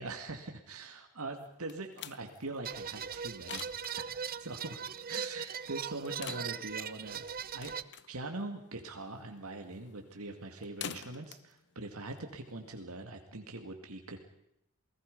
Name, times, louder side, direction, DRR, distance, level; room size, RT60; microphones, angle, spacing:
voice 1, 0.0-3.6 4.0-4.8 5.1-7.3 7.5-7.7 8.1-14.2, right 2 dB, 70° right, 4 dB, 2.3 m, -42 dB
sound 1, 1.4-12.8, left 8 dB, 55° left, 0.9 m, -49 dB
sound 2, 2.6-7.8, right 7 dB, 40° right, 0.7 m, -40 dB
28.5 x 19.0 x 5.4 m, 0.79 s
head